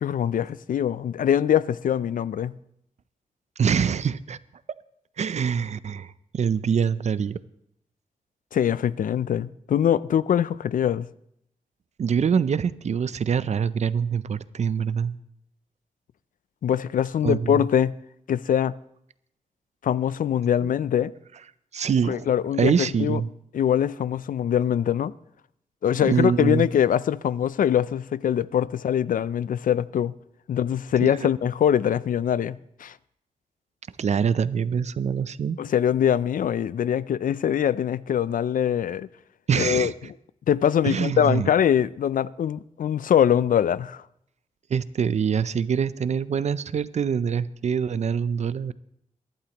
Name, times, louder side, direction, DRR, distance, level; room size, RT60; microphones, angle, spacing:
voice 1, 0.0-2.5 8.5-11.1 16.6-17.9 18.3-18.7 19.8-21.1 22.1-23.2 23.5-25.1 25.8-30.1 30.5-32.9 35.6-39.1 39.6-39.9 40.5-44.0, left 9 dB, 80° left, 0.4 m, -23 dB
voice 2, 3.6-4.4 5.2-7.4 12.0-15.1 17.2-17.7 20.6-20.7 21.7-22.3 22.6-23.3 25.9-26.6 31.0-31.3 34.0-35.6 39.5-39.9 40.8-41.5 44.7-48.7, right 7 dB, 55° right, 0.5 m, -24 dB
23.0 x 11.5 x 3.0 m
wide cardioid pair, 155°, 14 cm